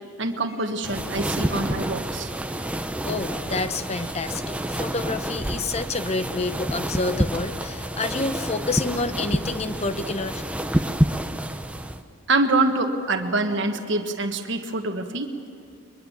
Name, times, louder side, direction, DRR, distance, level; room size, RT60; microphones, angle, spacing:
voice 1, 0.2-2.3 12.3-15.4, right 2 dB, 60° right, 5 dB, 1.5 m, -25 dB
sound 1, 0.8-12.0, right 1 dB, 5° right, 0.7 m, -28 dB
voice 2, 3.1-10.4, left 3 dB, 30° left, 11 dB, 0.8 m, -28 dB
22.5 x 22.0 x 7.3 m, 2.5 s
head